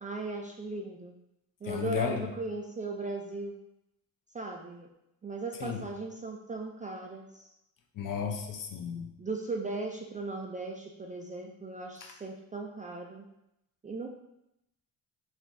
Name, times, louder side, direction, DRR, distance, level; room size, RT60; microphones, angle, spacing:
voice 1, 0.0-1.2 1.6-3.6 4.3-4.9 5.2-7.5 8.9-13.3 13.8-14.1, right 3 dB, 20° right, 0 dB, 0.3 m, -38 dB
voice 2, 1.6-2.3 5.6-5.8 7.9-9.1 12.0-12.1, left 7 dB, 50° left, 2 dB, 0.7 m, -34 dB
4.4 x 2.3 x 2.5 m, 0.84 s
supercardioid pair, 65°, 41 cm